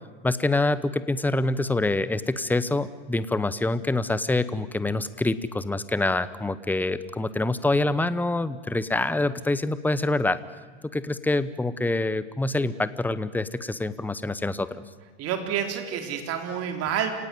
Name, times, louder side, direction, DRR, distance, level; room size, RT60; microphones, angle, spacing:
voice 1, 0.2-10.4 10.9-14.8, left 2 dB, 5° left, 15 dB, 0.9 m, -26 dB
voice 2, 15.2-17.1, right 8 dB, 40° right, 5 dB, 4.0 m, -28 dB
28.5 x 18.0 x 9.3 m, 1.4 s
hypercardioid pair, 110°, 36 cm